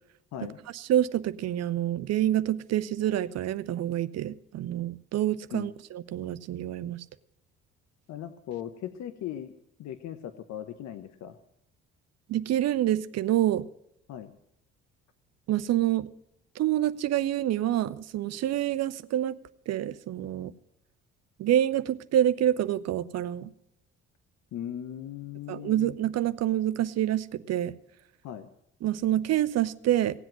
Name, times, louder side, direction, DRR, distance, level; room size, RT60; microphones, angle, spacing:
voice 1, 0.7-7.0 12.3-13.6 15.5-16.1 16.5-19.4 19.7-20.5 21.4-23.5 25.5-27.7 28.8-30.2, right 12 dB, 60° right, 14 dB, 0.7 m, -27 dB
voice 2, 8.1-9.5 9.8-11.4 14.1-14.3 24.5-25.9 28.2-28.5, left 10 dB, 65° left, 10 dB, 1.0 m, -38 dB
17.0 x 8.0 x 7.5 m, 0.78 s
hypercardioid pair, 60°, 30 cm